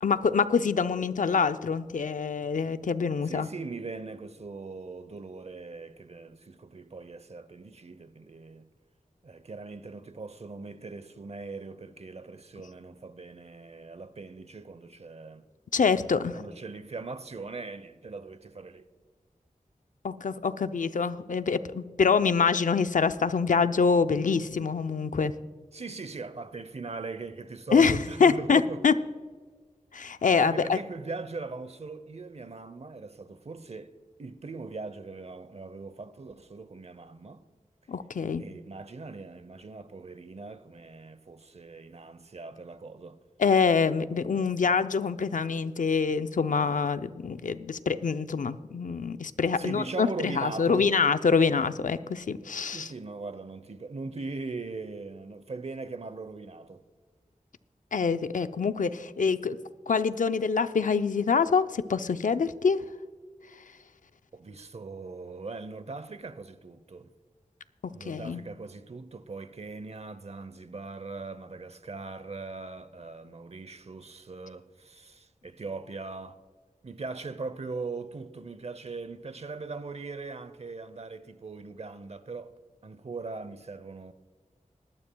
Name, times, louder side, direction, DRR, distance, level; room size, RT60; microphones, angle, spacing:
voice 1, 0.0-3.5 15.7-16.4 20.0-25.3 27.7-28.9 29.9-30.8 37.9-38.4 43.4-52.9 57.9-59.6 59.9-62.8 68.1-68.4, left 5 dB, 75° left, 0.5 m, -25 dB
voice 2, 3.2-8.7 9.2-15.4 16.3-18.9 25.7-28.8 30.4-33.9 34.2-37.4 38.4-43.2 49.5-50.9 52.7-56.8 64.3-67.1 67.9-76.4 76.8-82.5 82.8-84.1, right 3 dB, 50° right, 0.7 m, -40 dB
19.5 x 12.0 x 2.3 m
wide cardioid pair, 60°, 14 cm